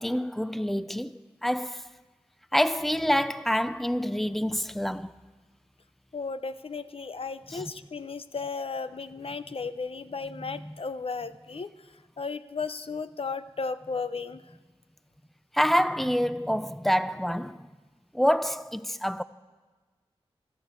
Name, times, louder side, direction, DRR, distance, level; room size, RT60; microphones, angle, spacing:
voice 1, 0.0-1.9 2.5-5.2 7.5-7.7 10.4-10.8 15.5-17.7 18.1-19.2, equal, ahead, 0.6 m, -27 dB
voice 2, 6.1-11.7 12.2-14.4, left 4 dB, 65° left, 0.7 m, -35 dB
14.0 x 12.0 x 8.2 m
cardioid pair, 45°, 11 cm